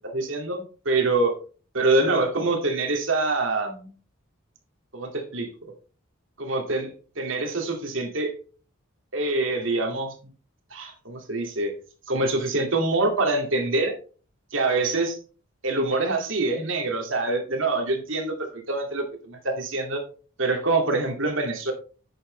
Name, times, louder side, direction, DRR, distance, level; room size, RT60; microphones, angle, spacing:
voice 1, 0.0-1.3 1.7-3.9 4.9-5.5 6.4-6.9 7.2-8.3 9.1-10.1 10.7-11.8 12.1-13.9 14.5-15.2 15.6-20.0 20.4-21.7, right 2 dB, 65° right, 3 dB, 2.3 m, -25 dB
10.5 x 7.9 x 3.2 m, 0.38 s
head